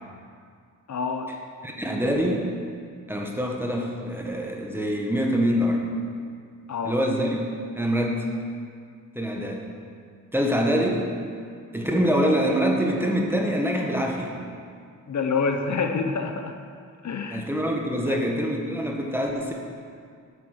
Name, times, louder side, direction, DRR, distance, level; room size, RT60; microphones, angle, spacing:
voice 1, 0.9-1.3 6.7-7.0 15.1-16.6 17.0-17.5 18.0-18.2, left 5 dB, 60° left, 5 dB, 0.8 m, -27 dB
voice 2, 1.6-2.5 3.1-5.8 6.8-7.5 7.7-8.3 9.1-9.7 10.3-11.1 11.7-14.3 17.3-19.5, equal, 5° right, 0 dB, 1.4 m, -25 dB
8.5 x 8.0 x 6.5 m, 2.2 s
wide cardioid pair, 105°, 32 cm